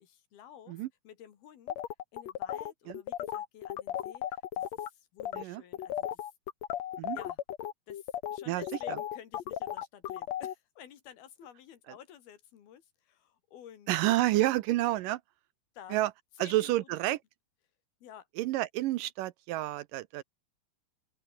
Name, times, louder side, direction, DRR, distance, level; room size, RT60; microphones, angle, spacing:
voice 1, 0.0-1.8 2.1-6.3 7.1-7.4 7.9-13.9 15.7-16.0 16.4-16.9 18.0-18.3, left 10 dB, 90° left, 4.2 m, -52 dB
sound 1, 1.7-4.9 5.2-5.4 5.7-10.5, left 11 dB, 60° left, 2.1 m, -35 dB
voice 2, 8.5-9.0 13.9-15.2 15.9-16.1 16.4-17.2 18.4-20.2, right 16 dB, 75° right, 2.2 m, -29 dB
open air
omnidirectional pair, 4.3 m